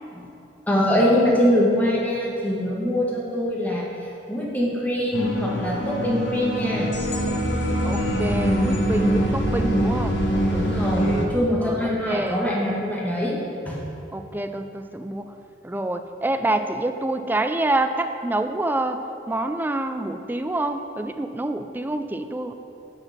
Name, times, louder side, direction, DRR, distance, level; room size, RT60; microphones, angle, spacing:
voice 1, 0.7-6.9 10.5-13.4 13.6-13.8, left 1 dB, 10° left, -4 dB, 1.5 m, -23 dB
sound 1, 5.1-11.3, equal, 85° left, 1.2 m, -23 dB
voice 2, 7.8-10.2 11.6-12.4 14.1-15.3 15.6-19.0 19.3-22.5, right 2 dB, 10° right, 8 dB, 0.4 m, -27 dB
8.0 x 5.8 x 5.9 m, 2.7 s
head